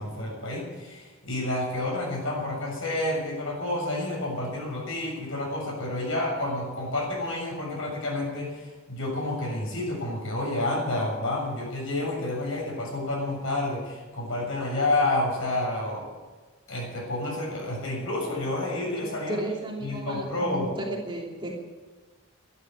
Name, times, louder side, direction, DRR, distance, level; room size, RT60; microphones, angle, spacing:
voice 1, 0.0-16.1 16.7-19.4 19.8-20.7, left 2 dB, 65° left, -1 dB, 7.1 m, -29 dB
voice 2, 18.9-21.5, right 1 dB, 20° right, -2 dB, 3.2 m, -34 dB
13.0 x 12.0 x 8.5 m, 1.3 s
head